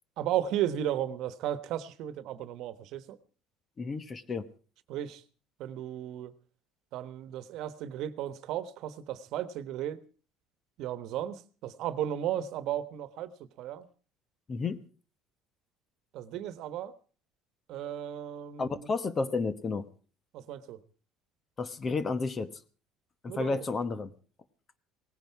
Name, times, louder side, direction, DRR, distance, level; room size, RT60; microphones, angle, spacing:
voice 1, 0.2-3.2 4.9-5.2 5.6-6.3 6.9-10.0 10.8-13.3 13.6-13.9 16.1-16.9 17.7-18.9 20.3-20.8 23.3-23.6, right 11 dB, 60° right, 14 dB, 1.3 m, -34 dB
voice 2, 3.8-4.4 14.5-14.8 18.6-19.8 21.6-22.5 23.2-24.1, left 4 dB, 25° left, 13 dB, 1.1 m, -31 dB
18.5 x 16.0 x 4.7 m, 0.40 s
cardioid pair, 140°, 0 cm